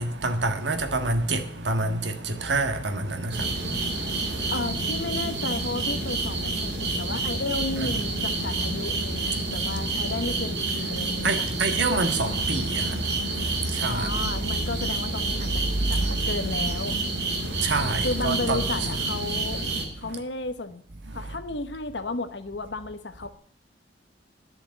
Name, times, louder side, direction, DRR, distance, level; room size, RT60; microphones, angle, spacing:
voice 1, 0.0-4.5 6.8-7.1 7.8-7.9 8.5-8.7 11.2-14.2 15.8-16.2 17.3-18.7 20.0-20.2 21.1-21.4, right 3 dB, 80° right, 1.6 m, -28 dB
sound 1, 3.3-19.8, right 2 dB, 65° right, 3.3 m, -28 dB
voice 2, 4.5-11.5 13.8-15.6 15.9-17.0 18.0-19.6 20.0-20.8 21.1-23.3, left 3 dB, 80° left, 1.1 m, -33 dB
11.5 x 6.7 x 9.2 m
head